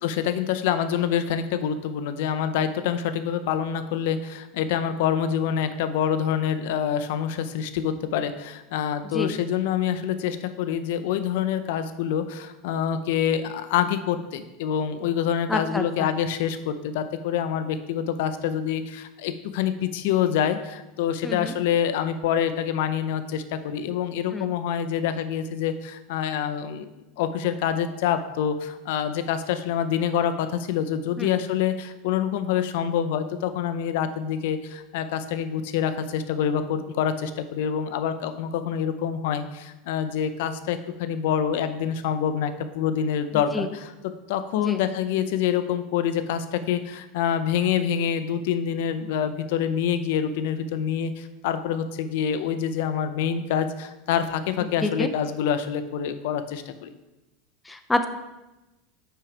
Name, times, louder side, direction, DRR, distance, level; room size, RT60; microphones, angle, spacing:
voice 1, 0.0-26.9 27.2-43.9 44.3-56.9, left 8 dB, 70° left, 10 dB, 0.6 m, -26 dB
voice 2, 15.5-16.1 21.2-21.5 24.3-24.5 31.2-31.3 43.5-43.7 44.6-44.8 54.8-55.1 57.7-58.1, left 2 dB, 10° left, 6 dB, 0.5 m, -27 dB
6.0 x 4.7 x 5.0 m, 1.0 s
hypercardioid pair, 90°, 0 cm